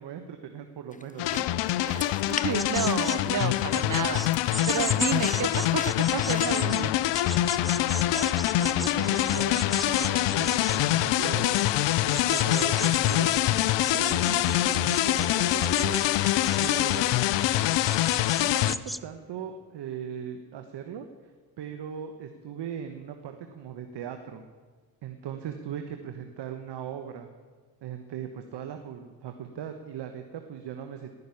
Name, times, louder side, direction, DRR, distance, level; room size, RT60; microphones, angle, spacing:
voice 1, 0.0-1.5 7.8-11.7 12.1-16.0 16.6-17.1 18.4-21.1 21.6-24.4 25.0-27.3 27.8-31.2, right 8 dB, 60° right, 6 dB, 1.3 m, -39 dB
sound 1, 0.9-6.7, left 4 dB, 15° left, 0.9 m, -41 dB
sound 2, 1.2-18.7, left 14 dB, 65° left, 0.7 m, -25 dB
voice 2, 1.8-4.3 4.7-6.9 11.2-11.3, right 9 dB, 40° right, 16 dB, 0.8 m, -31 dB
sound 3, 2.6-19.0, equal, ahead, 0.4 m, -38 dB
18.0 x 6.7 x 9.9 m, 1.4 s
hypercardioid pair, 50°, 47 cm